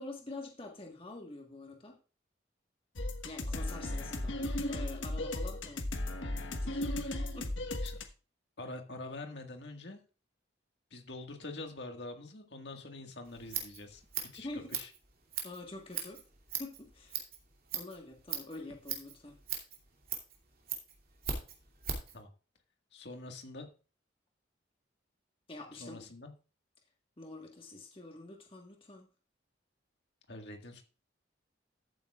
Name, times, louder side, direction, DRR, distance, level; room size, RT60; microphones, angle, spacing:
voice 1, 0.0-2.0 3.2-6.8 7.3-7.5 14.4-14.7 15.4-16.2 16.6-17.2 17.7-19.4 25.5-26.0 27.2-29.1, left 2 dB, 30° left, 1 dB, 1.5 m, -46 dB
sound 1, 3.0-8.0, left 1 dB, 85° left, 1.3 m, -36 dB
voice 2, 8.6-10.0 10.9-14.0 14.3-14.9 22.1-22.3 22.9-23.7 25.7-26.3 30.3-30.8, left 2 dB, 65° left, 4 dB, 1.8 m, -45 dB
Scissors, 13.2-22.2, right 7 dB, 50° right, 2.6 m, -40 dB
13.5 x 8.7 x 2.4 m, 0.34 s
head